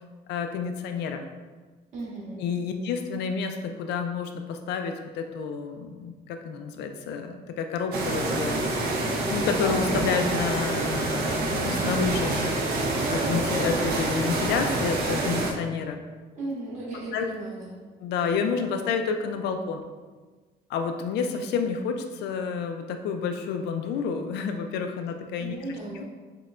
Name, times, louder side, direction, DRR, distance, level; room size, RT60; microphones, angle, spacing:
voice 1, 0.3-1.2 2.4-8.9 9.3-12.5 13.1-16.0 17.1-17.3 18.0-19.8 20.7-25.6 25.9-26.0, left 6 dB, 80° left, 6 dB, 0.4 m, -29 dB
voice 2, 1.9-2.4 16.3-17.8 25.4-26.0, right 2 dB, 45° right, -6 dB, 1.4 m, -36 dB
sound 1, 7.9-15.5, right 2 dB, 70° right, 0.6 m, -27 dB
6.1 x 2.2 x 2.4 m, 1.3 s
cardioid pair, 160°, 17 cm